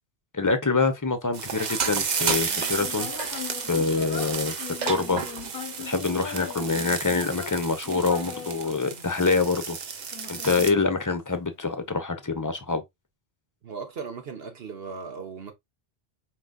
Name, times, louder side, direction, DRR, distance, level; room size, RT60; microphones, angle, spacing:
voice 1, 0.3-3.1 3.7-5.2 5.8-9.8 10.3-12.8, left 4 dB, 20° left, 0.7 m, -25 dB
sound 1, 1.3-10.7, right 6 dB, 50° right, 0.7 m, -32 dB
Human voice, 2.2-9.5 10.1-11.6, left 8 dB, 55° left, 0.8 m, -40 dB
voice 2, 13.6-15.5, right 5 dB, 70° right, 1.3 m, -37 dB
4.7 x 3.9 x 2.2 m
omnidirectional pair, 1.1 m